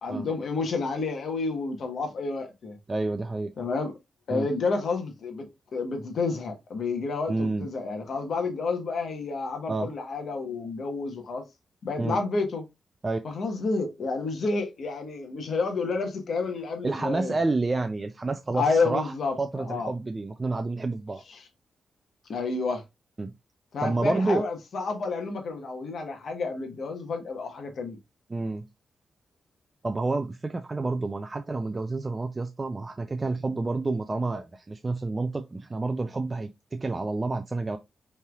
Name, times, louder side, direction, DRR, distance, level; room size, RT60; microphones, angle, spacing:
voice 1, 0.0-2.8 3.6-3.9 4.3-11.4 11.8-12.6 13.2-17.3 18.5-19.9 21.3-21.5 22.3-22.8 23.7-28.0, left 4 dB, 50° left, 1.1 m, -30 dB
voice 2, 2.9-3.5 4.3-4.5 7.3-7.7 9.7-9.9 12.0-12.2 13.0-13.2 16.8-21.2 23.2-23.3 23.8-24.4 28.3-28.7 29.8-37.8, right 3 dB, 20° right, 0.3 m, -29 dB
5.5 x 3.3 x 2.3 m
wide cardioid pair, 180°, 0 cm